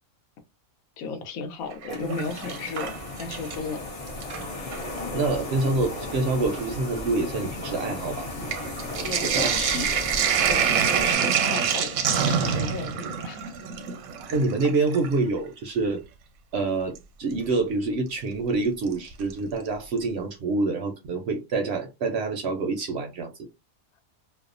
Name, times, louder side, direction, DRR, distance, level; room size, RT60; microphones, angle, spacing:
voice 1, 1.0-3.9 9.0-13.7, left 5 dB, 85° left, 1.1 m, -35 dB
Sink (filling or washing), 1.7-3.7 4.1-4.9 5.7-5.8 6.1-15.2 17.0-17.1 18.9-19.3 19.7-19.8 20.0-20.1, right 7 dB, 80° right, 1.0 m, -27 dB
sound 1, 1.9-11.1, left 2 dB, 50° left, 0.4 m, -35 dB
voice 2, 5.0-8.3 9.2-9.8 14.3-16.0 16.5-23.3, right 3 dB, 65° right, 0.7 m, -27 dB
2.6 x 2.1 x 2.5 m
omnidirectional pair, 1.5 m